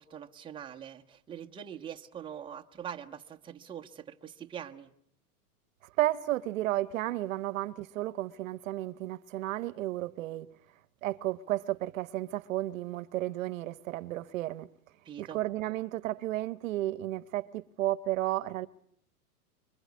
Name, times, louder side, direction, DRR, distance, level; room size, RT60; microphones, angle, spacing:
voice 1, 0.0-4.9 15.0-15.4, right 9 dB, 10° right, 1.2 m, -43 dB
voice 2, 6.0-10.5 11.0-14.7 15.2-18.7, right 15 dB, 55° right, 1.2 m, -33 dB
25.5 x 24.0 x 9.5 m
hypercardioid pair, 135°, 46 cm